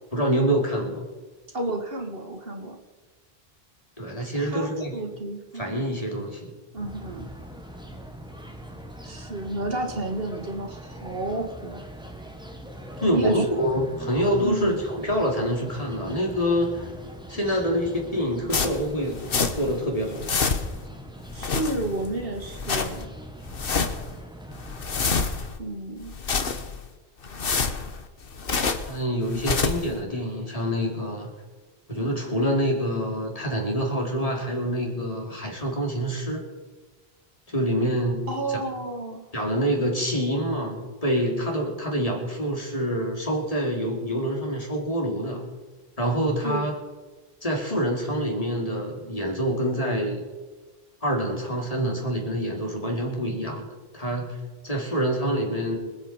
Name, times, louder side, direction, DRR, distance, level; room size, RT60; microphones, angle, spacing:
voice 1, 0.1-1.0 4.0-4.9 5.5-6.5 13.0-16.8 17.3-19.2 19.6-20.3 28.9-31.3 31.9-36.4 37.5-38.6 39.3-45.5 46.0-46.7 47.4-50.2 51.0-53.7 53.9-54.4 54.6-55.8, equal, 35° left, 0 dB, 3.5 m, -26 dB
voice 2, 1.5-2.8 4.4-5.8 6.7-7.3 9.0-11.9 13.1-13.5 14.4-14.8 17.5-17.6 21.3-23.1 25.6-26.1 38.3-39.2 46.4-46.7, right 2 dB, 65° right, 3 dB, 2.3 m, -31 dB
sound 1, 6.8-25.3, equal, 5° right, 1.4 m, -42 dB
sound 2, 18.5-19.8 20.0-20.9 21.3-22.1 22.4-23.0 23.4-24.1 24.5-25.6 26.0-26.9 27.2-29.0 29.3-29.9, left 5 dB, 60° left, 1.3 m, -27 dB
25.5 x 8.7 x 4.5 m, 1.3 s
omnidirectional pair, 1.1 m